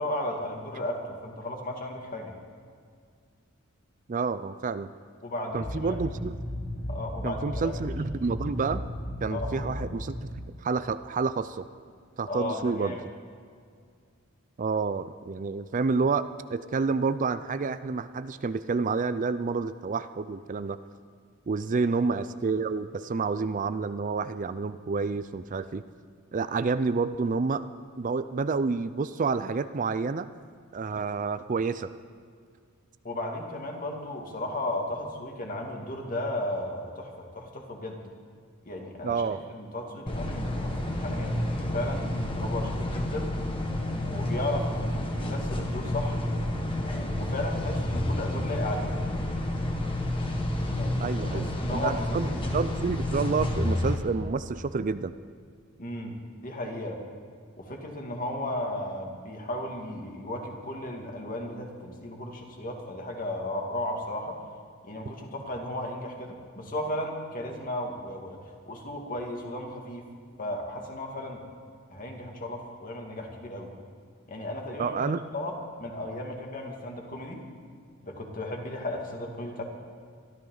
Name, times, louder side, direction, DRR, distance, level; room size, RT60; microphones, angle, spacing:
voice 1, 0.0-2.3 5.2-6.0 6.9-7.9 9.3-9.7 12.3-13.0 21.8-21.9 33.0-38.0 38.6-42.1 42.4-43.3 44.0-46.2 46.8-49.0 50.6-52.4 55.8-56.2 56.4-57.0 57.6-64.4 64.8-70.1 70.4-71.4 71.9-73.7 74.3-75.0 75.3-75.5 75.8-77.4 78.0-79.6, left 1 dB, 40° left, 1 dB, 2.3 m, -35 dB
voice 2, 4.1-4.9 5.5-6.3 7.2-8.8 9.2-10.3 10.6-11.7 12.2-13.0 14.6-20.8 21.5-25.8 26.3-27.7 28.0-30.3 30.7-31.9 39.0-39.4 51.0-55.1 74.8-75.2, right 4 dB, 40° right, 12 dB, 0.4 m, -29 dB
sound 1, 5.6-10.2, left 1 dB, 65° left, 4.9 m, -35 dB
sound 2, 40.1-53.9, left 1 dB, 25° left, 1.6 m, -30 dB
23.5 x 13.5 x 4.0 m, 2.2 s
head